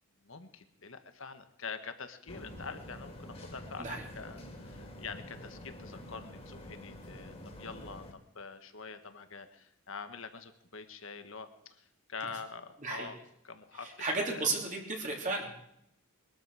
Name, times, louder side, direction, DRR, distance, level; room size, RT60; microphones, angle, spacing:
voice 1, 0.2-13.2 13.4-13.9 14.2-14.5, left 5 dB, 65° left, 9 dB, 1.5 m, -45 dB
sound 1, 2.3-8.1, left 1 dB, 30° left, 3.0 m, -47 dB
voice 2, 14.0-15.6, right 3 dB, 35° right, 0 dB, 3.3 m, -33 dB
22.5 x 13.0 x 4.9 m, 0.77 s
head